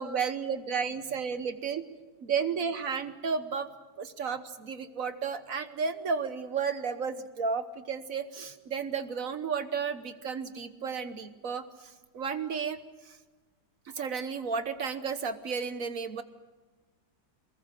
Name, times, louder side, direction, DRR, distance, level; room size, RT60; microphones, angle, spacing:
voice 1, 0.0-1.8 2.2-3.7 4.0-12.8 13.0-13.2 14.0-16.2, right 5 dB, 50° right, 11 dB, 1.3 m, -33 dB
24.0 x 21.0 x 7.7 m, 1.3 s
omnidirectional pair, 2.1 m